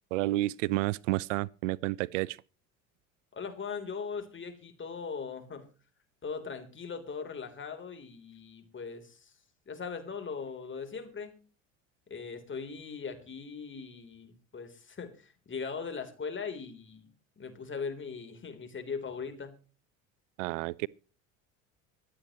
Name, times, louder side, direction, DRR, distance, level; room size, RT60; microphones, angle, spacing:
voice 1, 0.1-2.4 20.4-20.9, right 18 dB, 75° right, 0.5 m, -30 dB
voice 2, 3.3-5.7 6.2-9.3 9.7-11.4 12.1-17.1 17.4-19.6, left 5 dB, 30° left, 3.6 m, -40 dB
25.0 x 8.7 x 3.1 m
hypercardioid pair, 70°, 38 cm